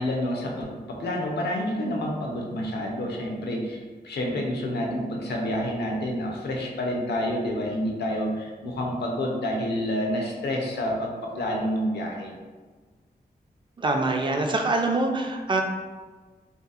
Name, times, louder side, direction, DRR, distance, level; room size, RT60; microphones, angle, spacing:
voice 1, 0.0-12.3, left 1 dB, 80° left, 0 dB, 0.5 m, -28 dB
voice 2, 13.8-15.6, right 2 dB, 30° right, 2 dB, 0.4 m, -24 dB
2.7 x 2.4 x 2.3 m, 1.4 s
cardioid pair, 55°, 17 cm